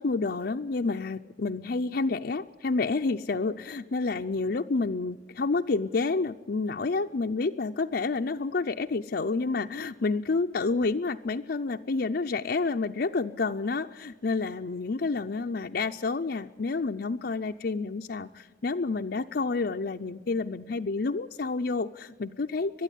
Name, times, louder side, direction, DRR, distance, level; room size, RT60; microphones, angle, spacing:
voice 1, 0.0-22.8, left 3 dB, 55° left, 4 dB, 0.5 m, -29 dB
22.5 x 12.0 x 10.0 m, 1.4 s
head